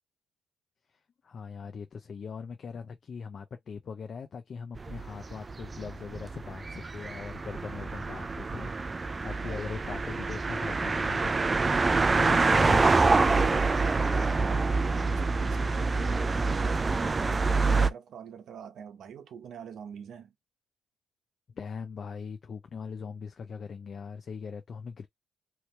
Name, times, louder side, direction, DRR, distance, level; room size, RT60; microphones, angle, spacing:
voice 1, 1.2-11.7 12.1-13.7 21.6-25.1, left 6 dB, 50° left, 0.5 m, -40 dB
sound 1, 4.8-17.9, right 3 dB, 30° right, 0.4 m, -26 dB
voice 2, 14.2-20.3, right 8 dB, 70° right, 0.9 m, -45 dB
2.9 x 2.9 x 3.2 m
cardioid pair, 90°, 0 cm